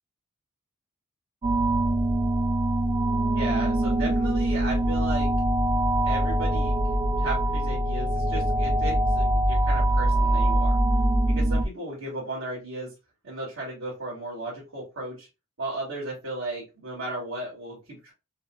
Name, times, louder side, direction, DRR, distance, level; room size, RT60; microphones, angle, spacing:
sound 1, 1.4-11.6, right 1 dB, 25° right, 0.4 m, -23 dB
voice 1, 3.3-5.3 5.7-5.8 6.0-10.8 11.3-12.9 13.2-15.3 15.6-18.1, right 2 dB, 85° right, -7 dB, 2.3 m, -35 dB
5.8 x 2.1 x 2.4 m, 0.26 s
head